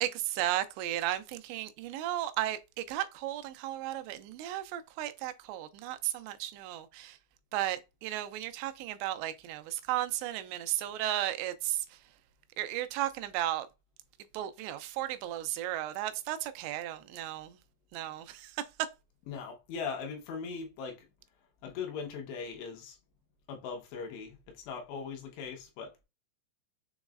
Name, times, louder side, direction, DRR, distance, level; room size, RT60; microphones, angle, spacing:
voice 1, 0.0-7.1 7.5-11.8 12.6-13.7 14.3-17.5 17.9-18.5, right 13 dB, 85° right, 2.8 m, -34 dB
voice 2, 19.3-21.1 21.6-23.0 23.5-26.0, left 5 dB, 80° left, 3.2 m, -40 dB
7.2 x 3.1 x 2.4 m
omnidirectional pair, 5.0 m